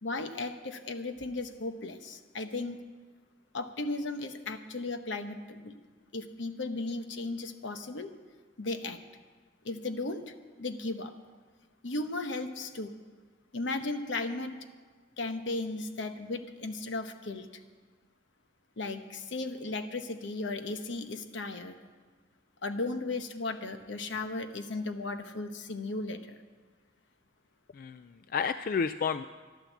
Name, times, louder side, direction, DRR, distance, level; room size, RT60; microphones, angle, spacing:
voice 1, 0.0-2.8 3.5-5.7 6.1-8.1 8.6-9.0 9.6-11.2 11.8-13.0 13.5-14.6 15.2-17.5 18.8-21.8 22.6-26.4, left 2 dB, 75° left, 8 dB, 1.0 m, -36 dB
voice 2, 27.7-29.2, left 6 dB, 45° left, 11 dB, 0.3 m, -31 dB
12.5 x 11.5 x 7.3 m, 1.4 s
head